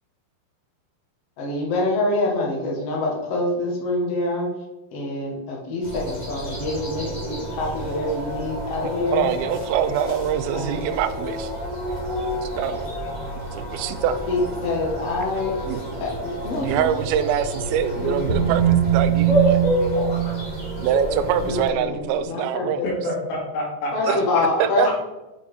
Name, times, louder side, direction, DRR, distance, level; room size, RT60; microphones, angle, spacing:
voice 1, 1.4-4.5 4.9-9.3 10.5-10.9 14.2-15.5 16.0-16.9 18.0-18.5 21.4-22.9 23.9-24.9, left 2 dB, 65° left, -1 dB, 1.6 m, -26 dB
sound 1, 5.8-21.6, equal, 35° left, 0.6 m, -29 dB
voice 2, 8.8-11.6 12.4-12.8 13.5-14.2 15.7-16.0 16.6-19.6 20.8-22.8 24.1-24.2 24.6-24.9, right 9 dB, 85° right, 10 dB, 2.2 m, -24 dB
sound 2, 16.8-22.3, right 11 dB, 65° right, 2.5 m, -24 dB
voice 3, 22.8-24.9, left 1 dB, 90° left, -2 dB, 3.9 m, -29 dB
8.4 x 5.0 x 3.5 m, 1.0 s
omnidirectional pair, 4.8 m